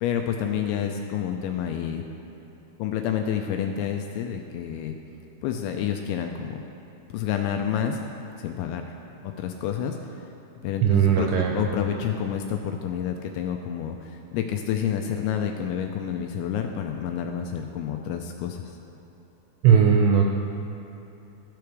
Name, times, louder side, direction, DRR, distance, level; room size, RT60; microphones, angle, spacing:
voice 1, 0.0-2.0 2.8-4.9 5.4-6.6 7.1-8.0 8.4-8.9 9.2-10.2 10.6-18.7, left 9 dB, 85° left, 3 dB, 2.7 m, -29 dB
voice 2, 10.8-11.5 19.6-20.3, right 7 dB, 80° right, 1 dB, 2.6 m, -18 dB
15.0 x 5.0 x 4.6 m, 3.0 s
omnidirectional pair, 5.6 m